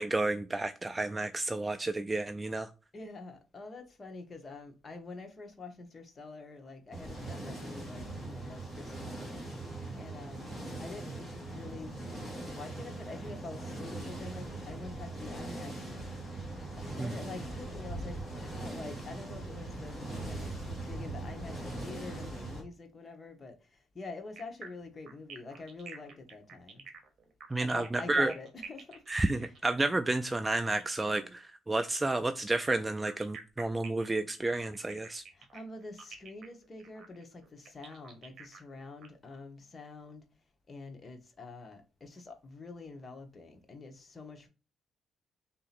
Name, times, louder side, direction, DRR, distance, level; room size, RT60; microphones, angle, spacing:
voice 1, 0.0-2.7 17.0-17.1 27.5-28.3 29.1-35.2, right 2 dB, 15° right, 0.3 m, -31 dB
voice 2, 2.9-9.5 10.0-10.5 10.8-11.9 12.5-16.2 16.8-26.8 27.6-29.0 35.3-40.2 40.7-44.5, left 3 dB, 35° left, 1.1 m, -46 dB
sound 1, 6.9-22.6, right 2 dB, ahead, 1.8 m, -41 dB
sound 2, 24.4-31.1 32.4-39.1, right 5 dB, 60° right, 1.1 m, -49 dB
3.9 x 2.9 x 4.1 m
cardioid pair, 90°, 0 cm